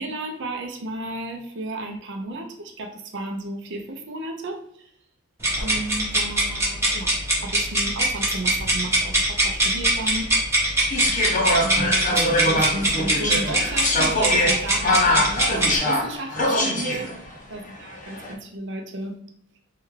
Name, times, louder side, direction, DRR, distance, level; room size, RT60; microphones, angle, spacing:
voice 1, 0.0-4.9 5.6-10.3 11.6-17.1 17.5-19.2, right 2 dB, 60° right, 3 dB, 0.6 m, -33 dB
sound 1, 5.4-15.8, right 1 dB, 10° right, 0.8 m, -22 dB
sound 2, 10.9-17.2 18.0-18.3, left 1 dB, 35° left, 0.6 m, -23 dB
3.4 x 2.3 x 3.1 m, 0.73 s
head